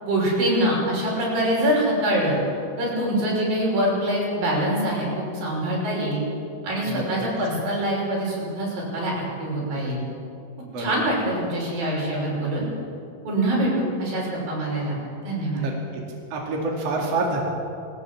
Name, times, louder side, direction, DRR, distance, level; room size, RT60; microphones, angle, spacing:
voice 1, 0.0-2.4 2.8-6.2 6.6-9.1 9.4-10.0 10.8-12.7 13.3-14.9 15.2-15.7, right 1 dB, 80° right, -4 dB, 7.6 m, -24 dB
voice 2, 16.3-17.5, right 2 dB, 45° right, -1 dB, 3.2 m, -26 dB
19.5 x 19.0 x 7.5 m, 2.5 s
omnidirectional pair, 4.0 m